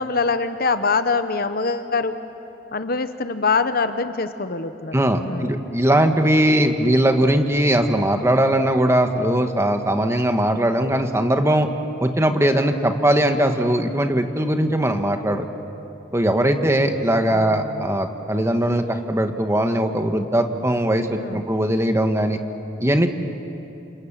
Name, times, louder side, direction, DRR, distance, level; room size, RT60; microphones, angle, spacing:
voice 1, 0.0-2.2 2.7-5.6 17.3-17.9 21.1-21.4, left 4 dB, 50° left, 10 dB, 1.0 m, -24 dB
voice 2, 4.9-11.7 12.0-15.5 16.1-22.4 22.8-23.1, right 1 dB, 15° right, 6 dB, 1.4 m, -20 dB
28.0 x 27.5 x 7.4 m, 2.9 s
head